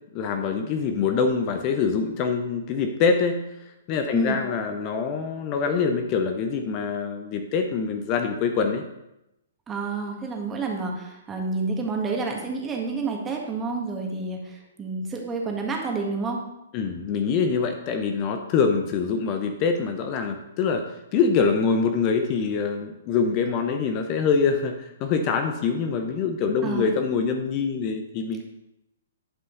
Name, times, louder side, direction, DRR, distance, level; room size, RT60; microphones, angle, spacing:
voice 1, 0.1-3.4 3.9-8.8 16.7-20.8 21.1-28.4, left 5 dB, 35° left, 5 dB, 0.7 m, -24 dB
voice 2, 9.7-16.4 26.6-26.9, right 4 dB, 15° right, 1 dB, 1.7 m, -29 dB
11.0 x 5.5 x 3.9 m, 0.89 s
figure-of-eight pair, 125°, 0 cm